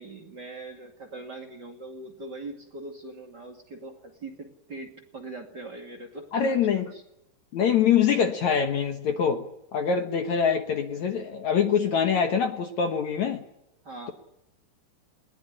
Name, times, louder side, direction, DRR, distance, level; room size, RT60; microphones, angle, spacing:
voice 1, 0.0-6.4 13.8-14.1, right 2 dB, 30° right, 2 dB, 2.5 m, -41 dB
voice 2, 6.3-6.9 7.5-9.5 9.7-13.4, left 7 dB, 60° left, 6 dB, 2.3 m, -24 dB
20.5 x 19.5 x 10.0 m, 0.82 s
omnidirectional pair, 4.3 m